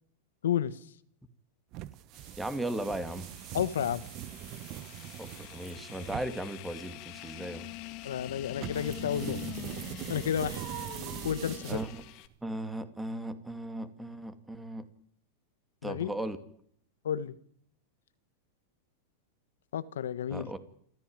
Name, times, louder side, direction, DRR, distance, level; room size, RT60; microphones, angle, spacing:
voice 1, 0.4-0.8 3.5-4.0 8.0-9.4 10.1-10.6 11.2-11.8 15.8-16.1 17.0-17.3 19.7-20.5, left 9 dB, 90° left, 15 dB, 1.3 m, -31 dB
sound 1, 1.7-12.3, right 14 dB, 40° right, 1.0 m, -42 dB
sound 2, 2.1-12.3, left 15 dB, 45° left, 1.8 m, -45 dB
voice 2, 2.4-3.2 5.2-7.7 11.7-12.0 12.4-14.9 15.8-16.4 20.3-20.6, right 1 dB, 5° right, 10 dB, 2.4 m, -37 dB
28.0 x 14.0 x 8.9 m, 0.64 s
supercardioid pair, 135°, 0 cm